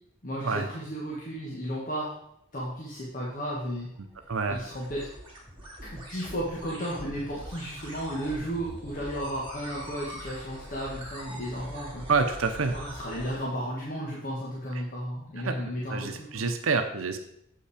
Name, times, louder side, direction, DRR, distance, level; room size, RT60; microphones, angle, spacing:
voice 1, 0.2-2.2 2.5-3.9 4.5-5.1 5.8-12.0 12.7-16.5, equal, 45° left, -5 dB, 1.5 m, -34 dB
sound 1, 3.7-13.4, right 1 dB, 25° right, 2.5 m, -43 dB
voice 2, 4.3-4.6 12.1-12.7 15.4-15.6 15.9-17.2, right 4 dB, 85° right, 7 dB, 0.7 m, -27 dB
7.8 x 5.6 x 4.9 m, 0.74 s
head